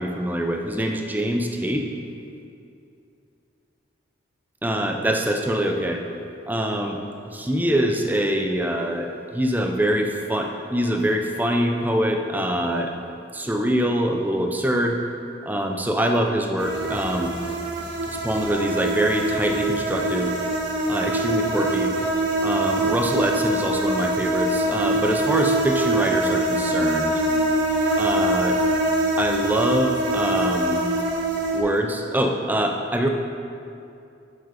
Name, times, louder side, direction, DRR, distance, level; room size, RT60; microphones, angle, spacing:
voice 1, 0.0-1.9 4.6-6.0 6.5-7.0 7.3-12.9 13.3-15.0 15.5-17.3 18.1-20.3 20.9-21.9 22.4-27.2 28.0-28.6 29.2-30.8 31.5-33.1, equal, 10° right, 3 dB, 0.5 m, -24 dB
sound 1, 16.6-31.6, right 2 dB, 60° right, 1.4 m, -24 dB
7.8 x 7.1 x 4.9 m, 2.6 s
head